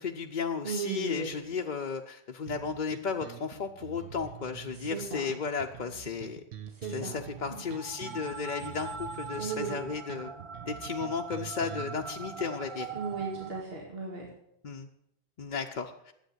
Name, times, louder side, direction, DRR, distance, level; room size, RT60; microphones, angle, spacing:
voice 1, 0.0-6.4 6.9-10.3 10.7-12.9 14.6-14.9 15.4-16.1, left 5 dB, 50° left, 2 dB, 0.8 m, -34 dB
voice 2, 0.6-1.3 4.7-5.3 6.7-7.2 7.5-7.6 9.3-9.9 12.9-14.3, right 3 dB, 65° right, -2 dB, 2.4 m, -36 dB
sound 1, 2.5-12.1, right 10 dB, 90° right, 1.1 m, -46 dB
sound 2, 7.1-13.6, right 5 dB, 45° right, 0.4 m, -42 dB
10.5 x 8.2 x 7.9 m, 0.78 s
omnidirectional pair, 1.1 m